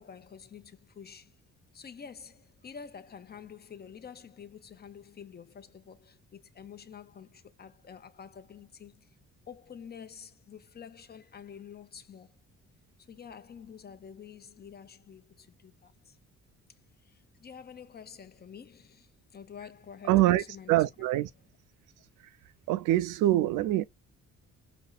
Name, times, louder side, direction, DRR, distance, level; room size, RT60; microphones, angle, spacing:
voice 1, 0.0-1.4 1.7-9.2 9.5-12.4 13.1-16.2 17.0-20.8, left 7 dB, 35° left, 0.6 m, -48 dB
voice 2, 20.1-21.3 22.7-23.8, right 15 dB, 90° right, 0.5 m, -25 dB
5.1 x 2.1 x 2.3 m
cardioid pair, 90°, 30 cm